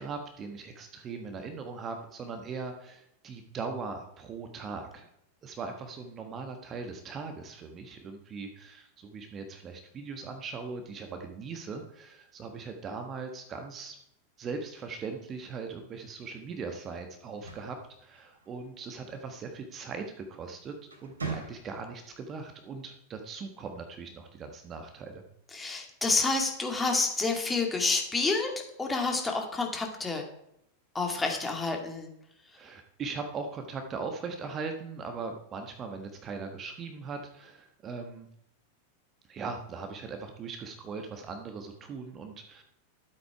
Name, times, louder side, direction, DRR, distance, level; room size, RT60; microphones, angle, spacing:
voice 1, 0.0-5.1 5.4-14.0 14.4-25.2 32.5-38.3 39.3-42.6, right 4 dB, 25° right, 5 dB, 1.4 m, -40 dB
sound 1, 17.2-18.7 20.2-20.4 20.8-22.0, right 4 dB, 75° right, 2.9 m, -41 dB
voice 2, 25.5-28.5 28.8-30.3 30.9-32.1, left 3 dB, 10° left, 2 dB, 2.3 m, -29 dB
13.0 x 8.3 x 4.8 m, 0.76 s
figure-of-eight pair, 90°, 0 cm